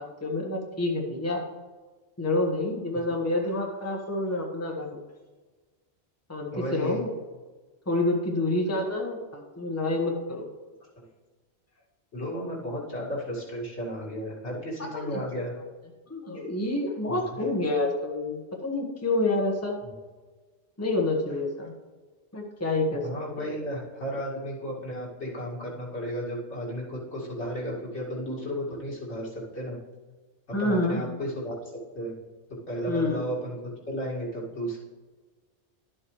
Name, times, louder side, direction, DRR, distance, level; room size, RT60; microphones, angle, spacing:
voice 1, 0.0-1.4 2.2-5.0 6.3-7.1 7.9-10.4 14.9-15.2 15.5-15.6 16.1-19.7 20.8-21.7 22.3-23.0 23.4-23.5 30.5-31.0 32.9-33.2, left 2 dB, 15° left, 0 dB, 1.3 m, -28 dB
voice 2, 6.5-7.0 11.0-11.1 12.1-15.5 17.1-17.2 19.8-19.9 23.0-29.8 30.6-31.6 31.9-32.1 32.7-33.6 33.9-34.8, equal, 80° left, -5 dB, 2.5 m, -33 dB
11.5 x 7.7 x 3.2 m, 1.3 s
omnidirectional pair, 1.1 m